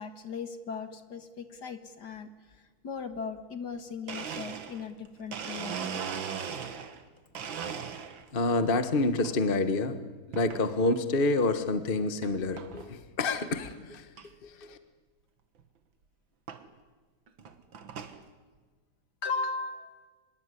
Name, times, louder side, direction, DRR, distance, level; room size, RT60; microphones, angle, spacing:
voice 1, 0.0-2.3 2.8-6.1 19.2-20.1, left 4 dB, 55° left, 9 dB, 2.2 m, -37 dB
Domestic sounds home sounds, 3.7-3.8 4.1-7.0 7.3-8.4 8.8-9.3 10.3-10.7 11.2-11.3 12.2-12.3 12.6-12.9 13.3-13.4 13.6-13.7 14.2-14.3 15.6-15.7 16.5-16.6 17.3-18.2, right 7 dB, 70° right, 2.3 m, -38 dB
voice 2, 8.3-10.0 10.3-14.0 14.4-14.8, left 2 dB, 30° left, 10 dB, 1.3 m, -28 dB
25.5 x 21.5 x 9.9 m, 1.4 s
omnidirectional pair, 2.3 m